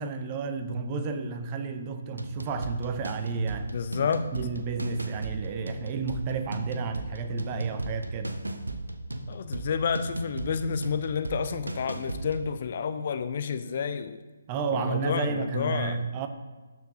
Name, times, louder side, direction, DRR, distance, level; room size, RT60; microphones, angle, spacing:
voice 1, 0.0-8.4 14.5-16.3, right 4 dB, 25° right, 0.5 m, -32 dB
sound 1, 2.1-12.5, right 2 dB, 70° right, 0.7 m, -36 dB
voice 2, 3.7-4.3 9.3-14.2 14.7-16.0, left 6 dB, 40° left, 0.4 m, -30 dB
12.0 x 4.6 x 2.7 m
figure-of-eight pair, 140°, 0 cm